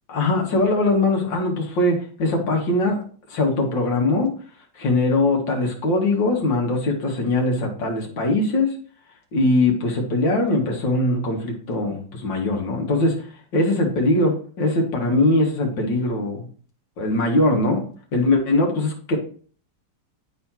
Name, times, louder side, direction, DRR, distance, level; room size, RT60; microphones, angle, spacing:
voice 1, 0.1-3.0 3.3-4.3 4.7-8.8 9.3-13.3 13.5-16.5 17.0-17.8 18.1-19.2, left 2 dB, 70° left, 0 dB, 2.4 m, -21 dB
11.5 x 4.3 x 2.9 m, 0.44 s
omnidirectional pair, 2.1 m